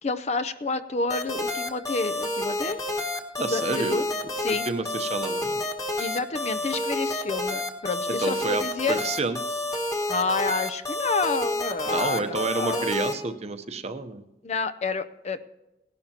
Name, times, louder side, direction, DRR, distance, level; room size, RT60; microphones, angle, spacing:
voice 1, 0.0-2.8 3.4-4.1 4.4-4.7 6.0-9.0 10.1-12.9 14.4-15.4, left 3 dB, 40° left, 13 dB, 0.5 m, -29 dB
sound 1, 1.1-13.1, left 1 dB, 20° left, 1.5 m, -29 dB
voice 2, 3.4-4.0 4.7-5.6 8.1-9.6 11.9-14.2, right 3 dB, 40° right, 8 dB, 0.8 m, -29 dB
18.5 x 11.5 x 2.9 m, 1.0 s
head